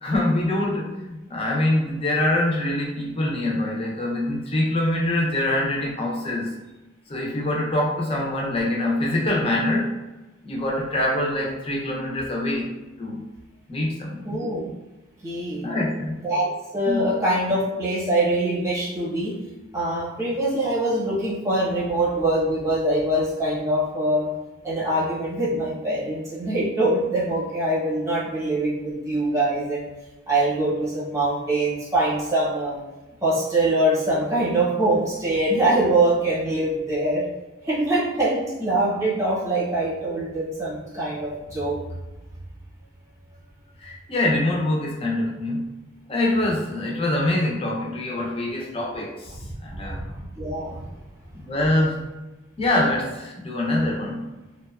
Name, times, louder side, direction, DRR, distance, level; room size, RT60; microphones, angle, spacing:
voice 1, 0.0-6.5 7.1-10.0 10.4-12.7 13.0-13.3 13.7-14.4 15.6-16.1 16.9-17.1 43.8-45.7 46.1-49.3 49.6-50.0 51.3-52.0 52.6-54.3, left 1 dB, 30° left, -2 dB, 0.5 m, -24 dB
voice 2, 14.2-14.7 15.2-15.7 16.2-16.4 16.7-19.3 19.7-24.3 24.6-29.8 30.3-32.8 33.2-37.2 37.7-41.8 49.8-50.8, right 1 dB, 15° right, -8 dB, 0.8 m, -23 dB
2.7 x 2.2 x 2.3 m, 1.1 s
head